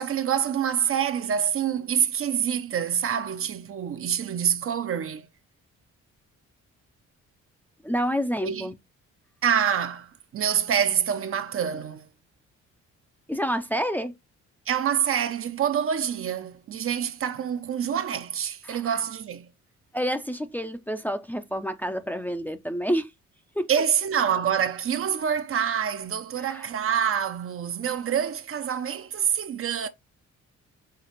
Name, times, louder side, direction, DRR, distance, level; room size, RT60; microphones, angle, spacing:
voice 1, 0.0-5.3 8.4-8.7 9.4-12.1 14.7-19.5 23.7-29.9, right 8 dB, 45° right, 0.6 m, -26 dB
voice 2, 7.8-8.7 13.3-14.1 18.6-19.0 19.9-23.1 23.6-23.7 26.4-26.7, equal, 5° left, 0.5 m, -28 dB
5.9 x 2.4 x 3.1 m
cardioid pair, 90°, 30 cm